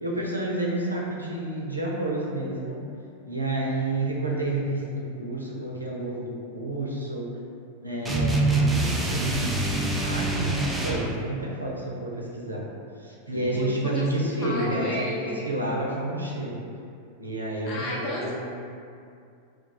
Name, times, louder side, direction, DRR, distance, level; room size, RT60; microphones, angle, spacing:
voice 1, 0.0-2.8 3.3-7.4 7.8-12.7 13.0-16.6 17.2-18.3, right 1 dB, 85° right, -3 dB, 0.5 m, -30 dB
sound 1, 8.1-11.1, right 2 dB, 10° right, 0.3 m, -25 dB
voice 2, 13.5-15.5 17.7-18.3, left 1 dB, 40° left, -4 dB, 0.6 m, -33 dB
2.3 x 2.2 x 3.9 m, 2.4 s
figure-of-eight pair, 90°, 0 cm